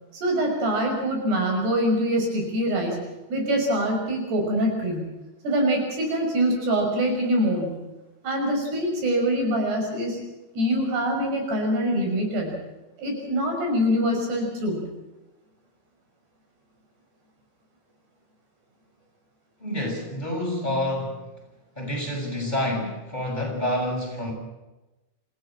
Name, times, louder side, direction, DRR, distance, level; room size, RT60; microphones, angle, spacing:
voice 1, 0.1-3.0 3.3-5.0 5.4-7.8 8.2-10.2 10.5-12.6 13.0-14.9, equal, 85° right, 1 dB, 8.2 m, -24 dB
voice 2, 19.6-21.2 21.8-24.3, left 1 dB, 10° left, 0 dB, 6.2 m, -28 dB
27.0 x 16.0 x 7.5 m, 1.1 s
omnidirectional pair, 4.6 m